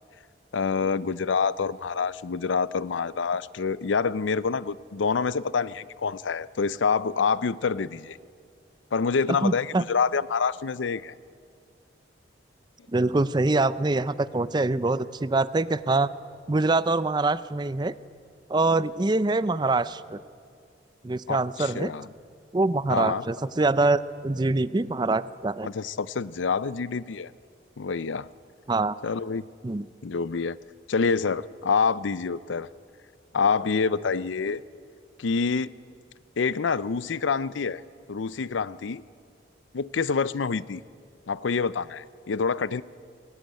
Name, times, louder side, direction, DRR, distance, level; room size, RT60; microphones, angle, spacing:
voice 1, 0.5-8.2 8.9-11.1 21.3-22.1 22.9-23.3 25.6-27.3 27.8-28.3 29.0-29.4 30.0-30.6 30.9-32.7 33.3-34.6 35.2-35.7 36.4-37.8 38.1-39.0 39.7-40.8 41.3-42.8, left 5 dB, 90° left, 18 dB, 0.5 m, -27 dB
voice 2, 9.4-9.8 12.9-16.1 16.5-17.9 18.5-20.2 21.0-21.9 22.5-25.7 28.7-28.9 29.6-29.9, right 2 dB, 25° right, 16 dB, 0.4 m, -24 dB
19.5 x 18.0 x 9.2 m, 2.2 s
head